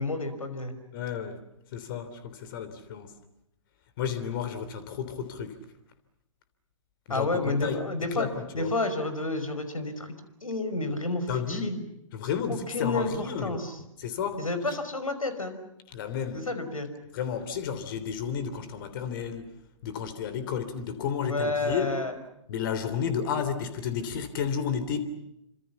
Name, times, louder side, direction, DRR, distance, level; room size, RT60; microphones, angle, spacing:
voice 1, 0.0-0.8 7.1-8.3 8.5-10.1 10.4-11.8 12.5-13.8 14.4-15.6 16.3-16.9 21.2-22.1, left 2 dB, 80° left, 5.3 m, -30 dB
voice 2, 0.9-1.4 1.7-3.1 4.0-5.6 7.1-7.8 8.1-8.7 11.3-11.7 12.1-13.6 14.0-14.4 14.7-14.8 15.9-16.4 17.1-19.5 19.8-21.9 22.5-25.1, left 7 dB, 40° left, 3.3 m, -32 dB
28.5 x 25.5 x 7.2 m
figure-of-eight pair, 125°, 17 cm